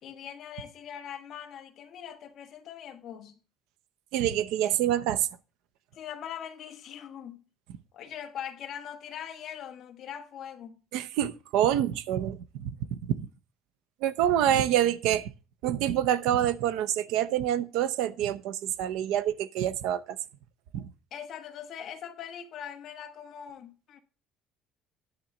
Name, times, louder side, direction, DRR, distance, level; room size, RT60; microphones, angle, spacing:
voice 1, 0.0-3.4 5.9-7.4 7.9-10.8 21.1-24.0, left 9 dB, 40° left, 1.2 m, -41 dB
voice 2, 4.1-5.3 10.9-12.7 13.0-13.2 14.0-15.3 15.6-20.2 20.7-20.9, right 11 dB, 75° right, 0.6 m, -26 dB
10.0 x 3.9 x 7.1 m
cardioid pair, 175°, 0 cm